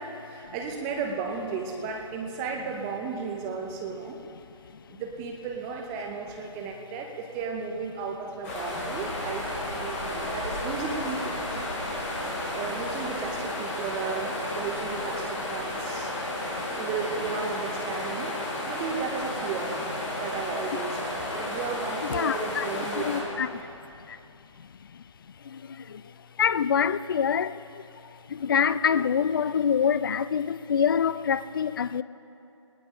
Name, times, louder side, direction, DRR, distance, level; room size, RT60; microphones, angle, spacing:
voice 1, 0.0-4.2 4.9-11.7 12.5-16.1 16.8-18.4 18.6-19.8 20.2-23.3, right 5 dB, 15° right, 2 dB, 0.9 m, -34 dB
sound 1, 8.4-23.2, left 1 dB, 25° left, 4.9 m, -32 dB
voice 2, 22.1-22.7 22.9-23.5 26.4-27.5 28.4-32.0, left 7 dB, 45° left, 16 dB, 0.4 m, -25 dB
19.5 x 19.5 x 3.8 m, 2.7 s
figure-of-eight pair, 150°, 16 cm